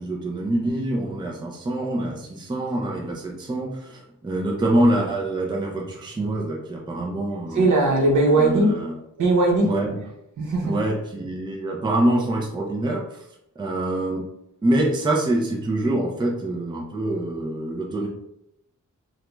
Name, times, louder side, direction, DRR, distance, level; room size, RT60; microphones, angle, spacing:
voice 1, 0.0-7.7 8.3-9.0 9.6-10.0 10.6-13.2 13.6-14.2 14.6-18.1, right 1 dB, 15° right, -1 dB, 0.4 m, -25 dB
voice 2, 7.5-8.7 9.2-9.7 10.4-10.7, right 2 dB, 75° right, -1 dB, 0.8 m, -19 dB
2.4 x 2.2 x 3.0 m, 0.80 s
wide cardioid pair, 175°, 31 cm